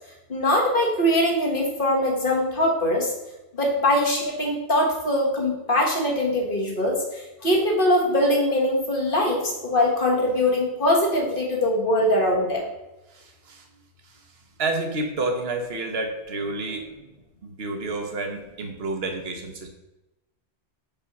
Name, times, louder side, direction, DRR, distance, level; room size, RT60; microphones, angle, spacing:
voice 1, 0.3-3.1 3.5-12.7, left 1 dB, 50° left, -2 dB, 1.7 m, -22 dB
voice 2, 13.1-13.7 14.0-14.2 14.6-17.1 17.4-19.7, right 2 dB, 65° right, 4 dB, 1.2 m, -30 dB
5.1 x 4.4 x 5.8 m, 0.98 s
omnidirectional pair, 1.2 m